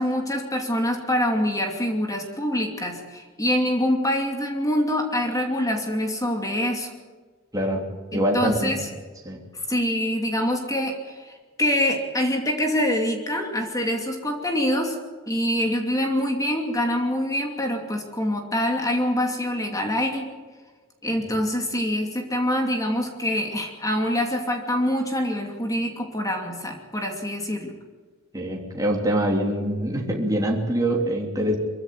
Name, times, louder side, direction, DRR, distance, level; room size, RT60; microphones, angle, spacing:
voice 1, 0.0-6.9 8.1-8.8 9.7-15.0 15.3-20.3 21.0-27.7, left 1 dB, 15° left, 3 dB, 2.7 m, -25 dB
voice 2, 8.1-8.8 9.2-9.4 28.3-31.6, right 1 dB, 15° right, -1 dB, 3.2 m, -24 dB
23.5 x 15.5 x 9.4 m, 1.4 s
head